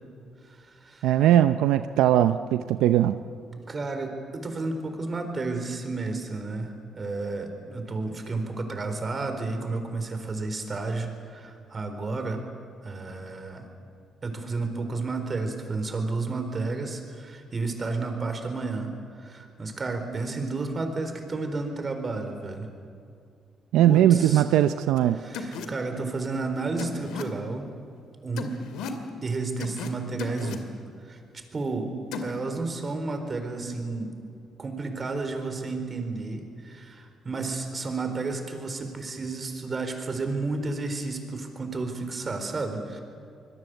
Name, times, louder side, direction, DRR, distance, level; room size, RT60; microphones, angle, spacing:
voice 1, 0.4-1.1 3.7-12.4 12.8-13.7 14.2-22.7 23.8-24.4 25.2-27.7 28.2-28.6 29.2-30.7 31.0-31.9 32.2-34.1 34.6-43.0, right 3 dB, 35° right, 6 dB, 4.3 m, -32 dB
voice 2, 1.0-3.2 23.7-25.2, right 11 dB, 90° right, 11 dB, 0.6 m, -20 dB
sound 1, 25.0-25.1 25.3-25.7 26.8-27.2 28.4-29.0 29.6-29.9 30.2-30.6 32.1-32.3, left 5 dB, 90° left, 2.2 m, -35 dB
26.0 x 21.5 x 8.0 m, 2.4 s
cardioid pair, 90°, 0 cm